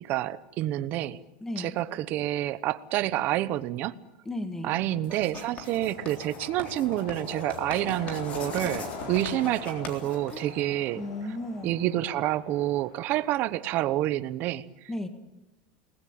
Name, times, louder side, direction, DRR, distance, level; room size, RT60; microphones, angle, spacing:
voice 1, 0.0-1.2 1.6-3.9 4.6-11.0 11.6-14.6, right 14 dB, 35° right, 14 dB, 1.0 m, -28 dB
voice 2, 1.4-1.7 4.2-4.7 10.3-10.5 10.9-11.8 14.9-15.1, left 1 dB, 10° left, 8 dB, 1.7 m, -34 dB
Writing, 5.0-10.9, left 3 dB, 25° left, 3.6 m, -42 dB
sound 1, 5.3-13.9, left 3 dB, 65° left, 5.9 m, -42 dB
29.5 x 19.5 x 8.8 m, 1.0 s
supercardioid pair, 170°, 5 cm